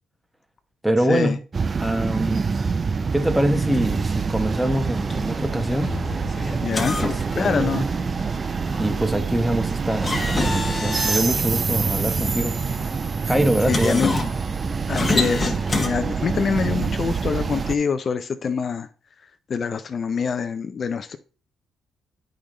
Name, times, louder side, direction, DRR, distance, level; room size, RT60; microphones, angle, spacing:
voice 1, 0.8-1.4 1.8-2.5 3.1-5.9 6.9-7.7 8.7-12.5 13.2-14.0, right 1 dB, 5° right, 1.1 m, -24 dB
sound 1, 1.5-17.7, right 5 dB, 35° right, 0.4 m, -26 dB
Servo noises, 3.7-15.9, left 3 dB, 25° left, 1.3 m, -30 dB
Explosion, 5.8-9.6, left 1 dB, 75° right, 3.0 m, -40 dB
voice 2, 6.6-7.0 7.3-7.9 13.7-14.2 14.9-18.9 19.5-21.2, left 6 dB, 45° left, 0.5 m, -25 dB
8.5 x 5.1 x 3.8 m
cardioid pair, 90°, 0 cm